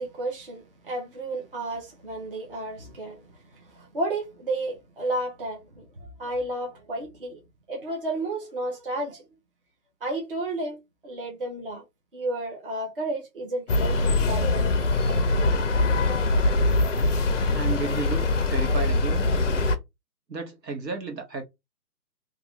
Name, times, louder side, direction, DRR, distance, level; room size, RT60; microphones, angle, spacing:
voice 1, 0.0-7.4 7.7-9.2 10.0-11.8 12.1-14.7 15.1-15.6, right 2 dB, 35° right, 0.8 m, -32 dB
sound 1, 13.7-19.8, left 2 dB, 50° left, 0.4 m, -23 dB
voice 2, 17.5-19.3 20.3-21.4, right 4 dB, 80° right, 1.3 m, -32 dB
2.6 x 2.5 x 3.0 m
hypercardioid pair, 175°, 49 cm